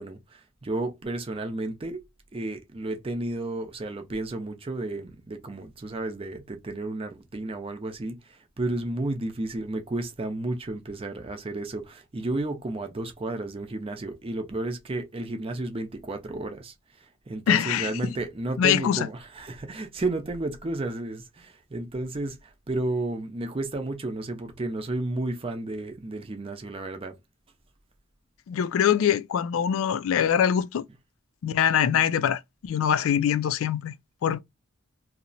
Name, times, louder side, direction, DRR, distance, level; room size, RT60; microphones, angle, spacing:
voice 1, 0.0-2.0 2.3-27.2, right 2 dB, 25° right, 0.5 m, -32 dB
voice 2, 17.5-18.1 18.6-19.1 28.5-30.9 31.4-33.9 34.2-34.4, left 8 dB, 70° left, 0.3 m, -23 dB
2.8 x 2.1 x 2.6 m
head